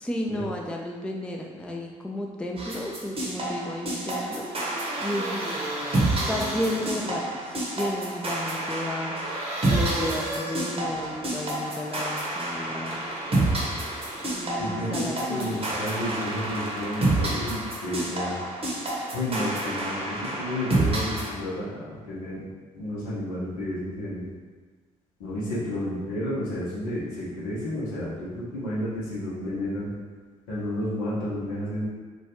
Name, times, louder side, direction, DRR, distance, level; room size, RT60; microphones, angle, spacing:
voice 1, 0.0-4.5 5.0-5.6 6.3-13.1 14.3-15.6, left 1 dB, 5° left, 0 dB, 0.4 m, -33 dB
sound 1, 2.6-21.3, right 2 dB, 30° right, 0.8 m, -29 dB
sound 2, 4.3-7.2 9.2-11.2 12.9-14.3 15.4-17.4, right 1 dB, 65° right, 0.8 m, -36 dB
voice 2, 14.6-18.4 19.1-22.5 22.7-24.3 25.2-29.9 30.5-31.9, left 1 dB, 75° left, -8 dB, 0.9 m, -31 dB
3.0 x 2.3 x 2.8 m, 1.4 s
figure-of-eight pair, 45°, 18 cm